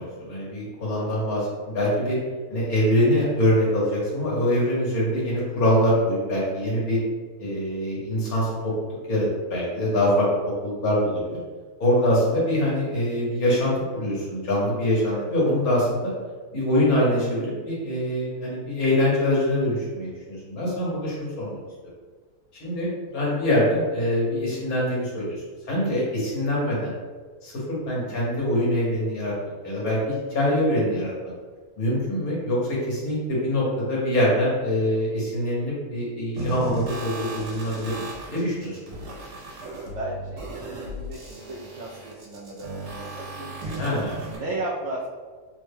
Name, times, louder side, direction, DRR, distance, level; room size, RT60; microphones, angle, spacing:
voice 1, 0.0-1.4 1.7-2.2 2.5-7.0 7.4-8.7 9.1-10.3 10.6-11.4 11.8-16.1 16.5-21.6 22.6-26.9 27.4-29.3 29.6-31.1 31.8-32.6 32.9-38.8 43.8-44.2, left 1 dB, 75° left, -5 dB, 1.5 m, -24 dB
voice 2, 1.0-1.3 4.8-5.1 15.1-15.3 27.9-28.2 39.9-43.8 44.2-45.1, right 2 dB, 65° right, -6 dB, 0.7 m, -36 dB
sound 1, 36.4-44.4, right 2 dB, 80° right, 1.4 m, -36 dB
3.4 x 2.2 x 3.3 m, 1.5 s
omnidirectional pair, 1.5 m